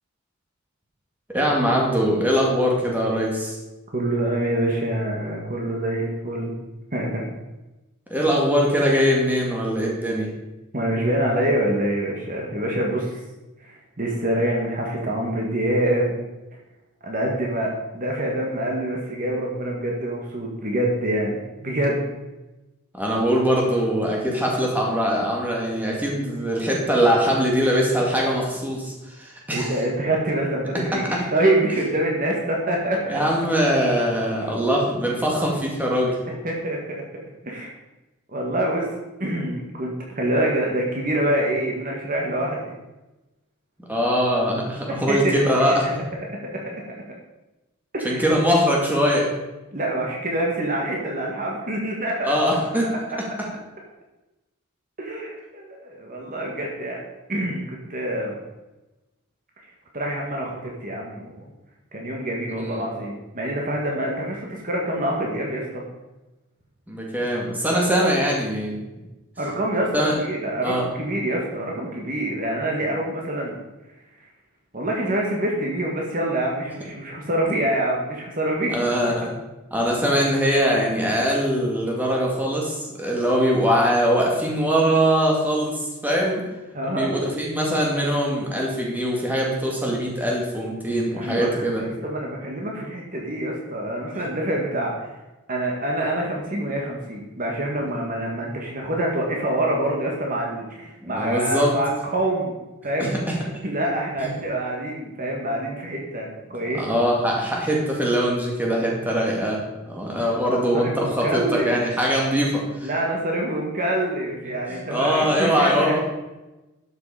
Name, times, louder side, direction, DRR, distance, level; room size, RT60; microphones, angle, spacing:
voice 1, 1.3-3.6 8.1-10.3 22.9-29.7 30.9-31.2 33.1-36.2 43.9-46.0 48.0-49.3 52.2-52.9 62.6-62.8 66.9-68.8 69.9-70.1 70.6-70.9 78.7-79.3 79.7-86.4 86.9-91.8 94.2-94.3 101.0-101.8 104.2-104.3 106.8-109.6 109.9-112.9 114.9-116.0, equal, 10° right, -2 dB, 2.1 m, -22 dB
voice 2, 3.9-6.5 6.9-7.2 10.7-13.2 13.6-16.1 17.0-22.1 29.5-33.2 36.4-37.0 37.4-37.7 38.3-38.9 39.2-42.7 44.9-45.3 45.6-45.8 46.4-46.5 47.9-48.2 49.7-52.3 53.2-53.3 55.0-57.0 57.3-58.4 59.6-59.7 59.9-61.4 61.9-65.8 67.7-68.1 69.4-73.5 74.7-78.7 79.0-79.1 86.7-87.1 91.1-95.1 95.5-102.6 102.8-103.2 103.6-106.8 110.7-111.7 112.8-116.0, right 1 dB, 40° right, -1 dB, 1.7 m, -26 dB
12.0 x 6.8 x 4.9 m, 1.1 s
head